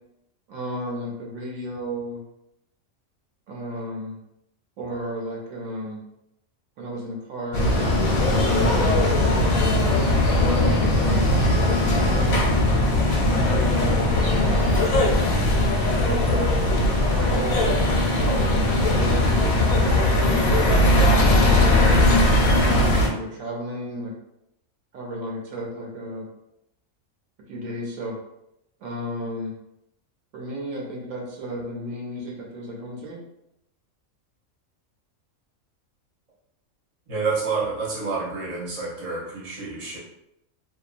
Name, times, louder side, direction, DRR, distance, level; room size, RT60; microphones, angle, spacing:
voice 1, 0.5-2.2 3.5-4.2 4.8-6.0 6.8-9.7 10.2-10.9 11.5-12.5 13.2-14.7 15.8-17.8 18.2-20.5 21.4-24.2 24.9-26.3 27.5-28.2 28.8-29.6 30.3-33.2, equal, 80° right, -1 dB, 1.0 m, -33 dB
sound 1, 7.5-23.1, left 1 dB, 90° left, 1.1 m, -19 dB
voice 2, 37.1-40.0, right 4 dB, 30° right, -6 dB, 0.7 m, -28 dB
2.8 x 2.2 x 2.4 m, 0.82 s
omnidirectional pair, 1.4 m